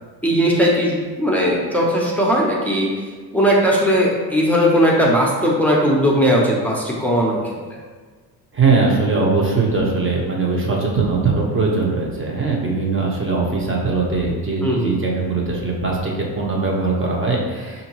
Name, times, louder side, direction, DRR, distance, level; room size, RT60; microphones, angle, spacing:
voice 1, 0.2-3.1 3.3-7.8 14.6-14.9, equal, 5° left, -3 dB, 0.8 m, -18 dB
voice 2, 8.5-17.9, right 3 dB, 30° right, -2 dB, 1.1 m, -20 dB
5.0 x 2.8 x 3.0 m, 1.4 s
cardioid pair, 80°, 40 cm